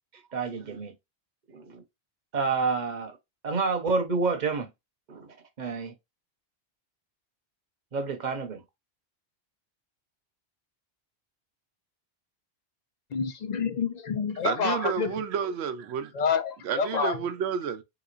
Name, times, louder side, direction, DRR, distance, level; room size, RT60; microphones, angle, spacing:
voice 1, 0.3-0.9 1.5-1.8 2.3-3.1 3.4-4.7 5.1-5.9 7.9-8.6, right 4 dB, 45° right, 0.9 m, -29 dB
voice 2, 13.1-15.1 16.1-17.2, left 6 dB, 55° left, 0.5 m, -28 dB
voice 3, 14.4-16.1 16.6-17.8, right 8 dB, 80° right, 0.9 m, -30 dB
3.7 x 3.0 x 2.4 m
omnidirectional pair, 1.1 m